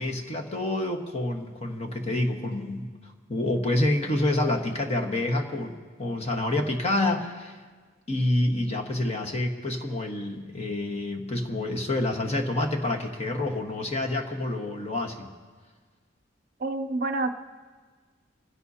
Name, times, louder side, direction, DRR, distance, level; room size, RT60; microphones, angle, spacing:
voice 1, 0.0-2.9 3.3-7.6 8.1-15.3, left 1 dB, 35° left, 2 dB, 1.4 m, -28 dB
voice 2, 16.6-17.3, right 2 dB, 50° right, 6 dB, 0.5 m, -28 dB
26.0 x 16.0 x 2.8 m, 1.5 s
head